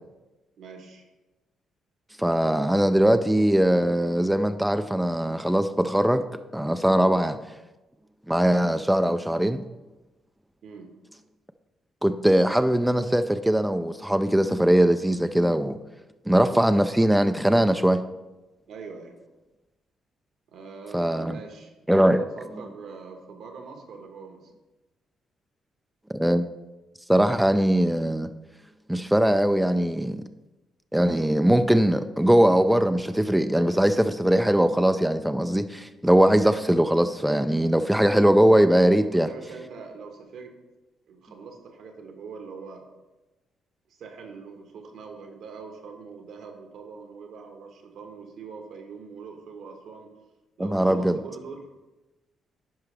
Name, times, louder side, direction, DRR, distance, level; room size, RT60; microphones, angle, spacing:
voice 1, 0.6-1.0 10.6-10.9 18.7-19.1 20.5-24.5 39.0-40.5 41.1-42.8 43.9-50.1 50.6-51.7, right 5 dB, 75° right, 4 dB, 1.3 m, -42 dB
voice 2, 2.2-6.2 6.5-7.4 8.3-9.6 12.0-15.8 16.3-18.0 20.9-21.4 21.9-22.2 26.1-26.5 27.1-28.3 28.9-30.2 30.9-39.3 50.6-51.1, right 1 dB, 5° right, 9 dB, 0.3 m, -21 dB
10.5 x 4.8 x 3.3 m, 1.1 s
cardioid pair, 90°, 0 cm